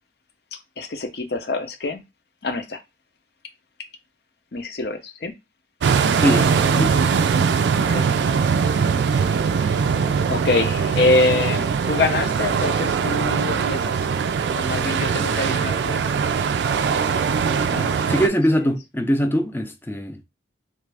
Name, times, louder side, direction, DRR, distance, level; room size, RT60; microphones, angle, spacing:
voice 1, 0.8-2.0 2.4-2.8 4.5-5.3 7.7-8.1 9.6-9.7 10.0-10.1 10.3-14.0 14.5-16.0 18.0-18.1 18.5-18.7, left 3 dB, 60° left, 0.6 m, -25 dB
sound 1, 5.8-18.3, right 6 dB, 70° right, 0.3 m, -21 dB
voice 2, 6.2-6.9 17.7-20.2, equal, 10° left, 0.4 m, -22 dB
3.2 x 2.4 x 3.3 m
head